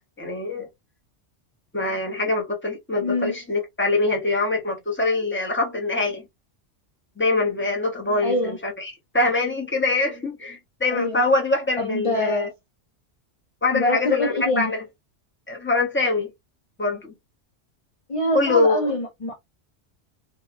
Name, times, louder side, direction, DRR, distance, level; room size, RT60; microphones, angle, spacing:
voice 1, 0.2-0.7 1.7-6.2 7.2-12.5 13.6-14.8 15.5-16.3 16.8-17.1 18.3-18.8, left 2 dB, 10° left, 0.9 m, -24 dB
voice 2, 3.0-3.3 8.2-8.6 10.9-11.3 11.8-12.5 13.7-14.7 18.1-19.4, left 1 dB, 45° left, 0.4 m, -25 dB
2.9 x 2.3 x 2.4 m
omnidirectional pair, 1.2 m